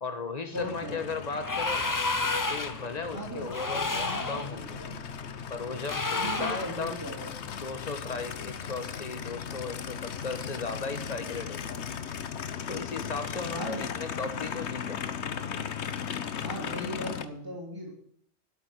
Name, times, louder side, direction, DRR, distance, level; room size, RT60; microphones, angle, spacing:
voice 1, 0.0-2.0 2.5-4.8 5.5-7.0 7.5-11.8 12.7-15.0, left 4 dB, 35° left, 8 dB, 1.4 m, -36 dB
Aircraft, 0.5-17.3, left 7 dB, 75° left, 1.2 m, -37 dB
voice 2, 0.5-1.0 3.1-3.5 3.8-5.0 6.1-7.4 13.5-13.9 16.4-17.9, equal, 20° right, -2 dB, 3.2 m, -38 dB
sound 1, 1.4-2.9 3.5-4.5 5.8-6.8, left 3 dB, 20° left, 0.7 m, -30 dB
12.0 x 8.3 x 9.9 m, 0.67 s
omnidirectional pair, 1.2 m